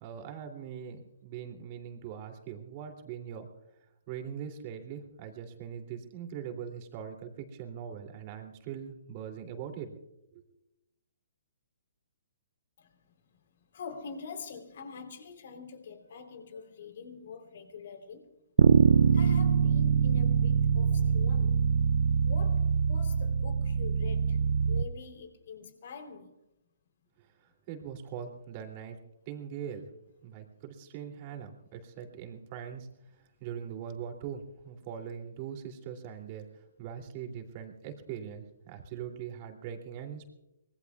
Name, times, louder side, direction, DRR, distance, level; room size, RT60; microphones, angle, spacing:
voice 1, 0.0-3.5 4.1-9.9 10.3-10.4 27.7-29.0 29.3-29.9 30.2-32.9 33.4-36.5 36.8-40.3, right 8 dB, 35° right, 2.9 m, -41 dB
voice 2, 13.7-18.3 19.1-21.7 22.2-24.4 24.7-26.3, left 5 dB, 60° left, 3.6 m, -45 dB
Bass guitar, 18.6-24.8, right 6 dB, 75° right, 0.6 m, -24 dB
25.0 x 21.0 x 2.4 m
hypercardioid pair, 140°, 0 cm